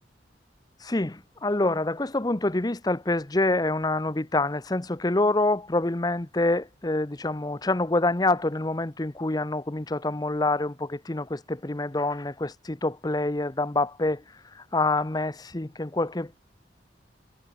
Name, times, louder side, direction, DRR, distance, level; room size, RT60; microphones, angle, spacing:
voice 1, 0.8-14.2 14.5-16.4, left 2 dB, 20° left, 0.8 m, -26 dB
head